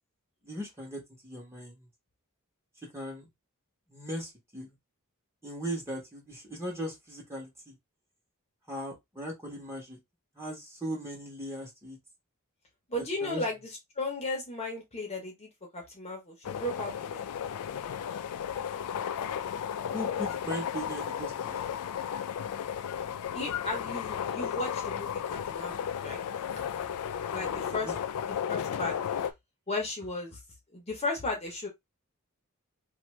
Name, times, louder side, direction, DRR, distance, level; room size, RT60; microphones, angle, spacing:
voice 1, 0.4-1.9 2.9-3.3 3.9-4.7 5.4-7.8 8.7-10.0 10.3-12.0 13.2-13.5 19.9-21.6 27.3-28.0, equal, 10° right, 1.2 m, -38 dB
voice 2, 12.9-13.6 14.0-17.2 23.3-26.2 27.3-27.9 28.5-28.9 29.7-30.4 30.7-31.7, left 2 dB, 30° left, 0.9 m, -35 dB
sound 1, 16.4-29.3, left 8 dB, 80° left, 0.3 m, -34 dB
2.8 x 2.6 x 3.1 m
head